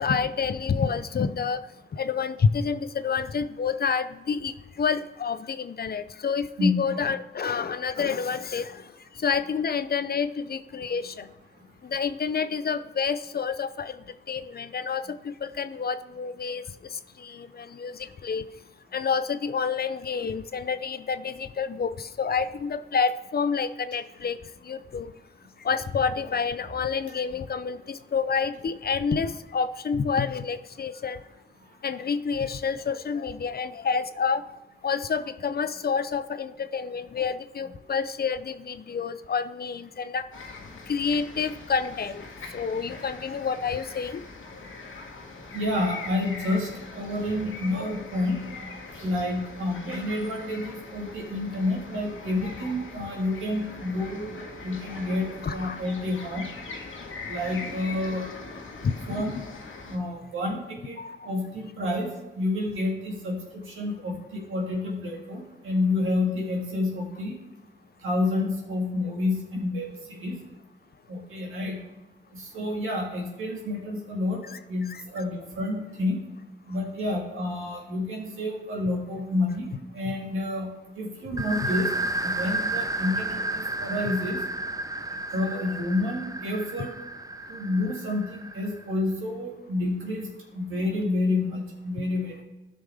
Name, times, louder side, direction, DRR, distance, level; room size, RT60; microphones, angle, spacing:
voice 1, 0.0-1.6 1.9-8.8 9.2-11.3 11.8-13.9 14.3-16.6 16.9-18.5 18.9-24.4 24.6-25.1 25.6-31.2 31.8-34.5 34.8-40.3 40.9-42.2 42.5-44.2 55.4-55.8 58.8-59.4 61.0-61.2 74.5-74.6 74.9-75.0 80.0-80.1 81.6-81.7, left 6 dB, 50° left, 12 dB, 0.6 m, -28 dB
voice 2, 6.6-6.9 45.5-48.5 48.9-56.5 57.3-58.3 59.1-59.4 59.8-61.0 61.2-67.4 68.0-70.4 71.1-71.8 72.3-76.2 76.7-80.7 80.9-81.9 82.2-84.4 85.3-86.9 87.5-90.3 90.5-92.4, left 2 dB, 90° right, -1 dB, 1.9 m, -29 dB
sound 1, 40.3-60.0, left 3 dB, 80° left, 1.4 m, -42 dB
sound 2, 81.4-88.8, right 2 dB, 15° right, 0.5 m, -32 dB
13.0 x 5.4 x 3.5 m, 1.0 s
cardioid pair, 50°, 20 cm